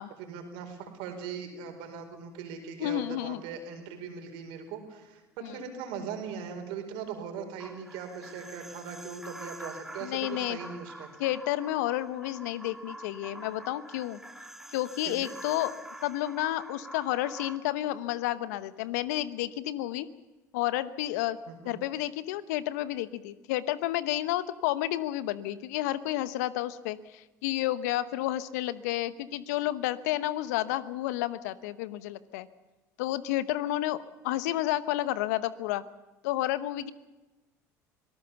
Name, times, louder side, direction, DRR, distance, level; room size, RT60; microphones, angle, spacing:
voice 1, 0.2-11.1 15.0-15.2 21.5-21.8, right 6 dB, 70° right, 6 dB, 4.6 m, -40 dB
voice 2, 2.8-3.4 5.4-5.6 10.0-10.6 11.2-14.2 14.7-15.7 16.0-20.1 20.5-21.4 21.6-32.5 33.0-35.8 36.2-36.9, left 14 dB, 75° left, 16 dB, 1.0 m, -31 dB
sound 1, 7.6-17.6, right 1 dB, 5° right, 2.1 m, -46 dB
25.5 x 18.5 x 7.0 m, 1.1 s
hypercardioid pair, 70°, 9 cm